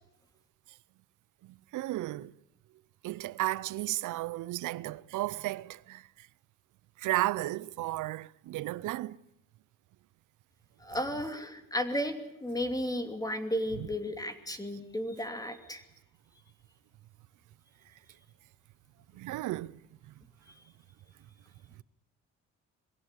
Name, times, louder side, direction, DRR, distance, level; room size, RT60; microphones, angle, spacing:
voice 1, 1.4-2.3 3.0-6.3 7.0-9.2 10.9-11.1 13.8-13.9 19.1-19.8, right 17 dB, 80° right, 0.7 m, -34 dB
voice 2, 10.8-15.8, equal, 10° left, 2.7 m, -34 dB
22.0 x 16.5 x 8.2 m
cardioid pair, 90°, 30 cm